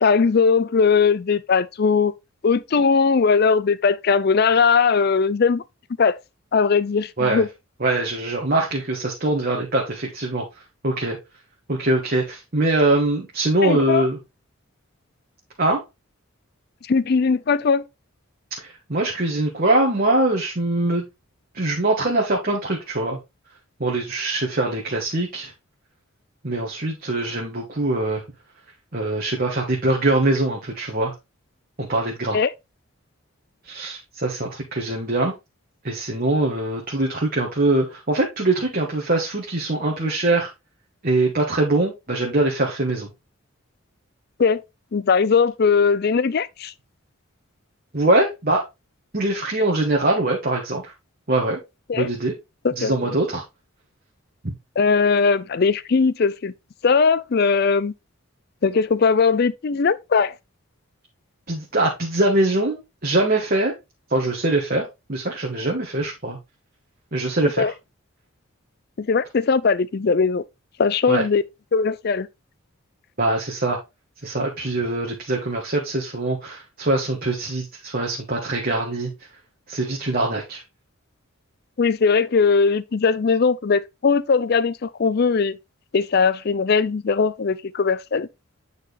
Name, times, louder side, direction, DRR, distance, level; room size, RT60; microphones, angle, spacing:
voice 1, 0.0-2.1 2.4-5.6 6.0-6.2 6.5-7.5 13.6-14.1 16.9-17.9 32.3-32.5 44.4-44.6 44.9-46.7 51.9-52.1 52.6-53.1 54.8-56.5 56.8-57.9 58.6-60.3 67.6-67.7 69.0-70.4 70.8-71.4 71.7-72.3 81.8-85.6 85.9-88.3, left 5 dB, 45° left, 0.4 m, -19 dB
voice 2, 7.8-10.4 10.8-11.2 11.7-14.2 15.6-15.8 18.6-21.0 21.5-23.2 23.8-25.5 26.4-28.2 28.9-31.1 31.8-32.4 33.6-35.3 35.8-40.5 41.0-43.1 47.9-48.6 49.1-50.8 51.3-51.6 51.9-52.3 52.8-53.4 54.4-54.5 61.5-63.7 64.1-66.4 67.1-67.7 71.1-71.3 73.2-73.8 74.2-79.1 79.7-80.6, right 2 dB, 45° right, 1.4 m, -22 dB
9.1 x 4.1 x 3.3 m
head